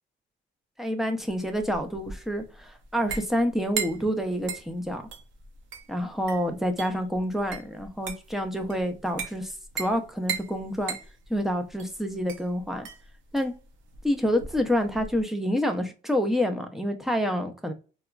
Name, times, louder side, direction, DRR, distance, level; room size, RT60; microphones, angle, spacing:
voice 1, 0.8-5.0 5.9-11.0 11.3-12.9 13.3-13.5 14.0-17.7, equal, ahead, 0.5 m, -28 dB
sound 1, 1.3-15.2, right 6 dB, 75° right, 0.7 m, -38 dB
2.8 x 2.2 x 2.3 m
cardioid pair, 90°, 20 cm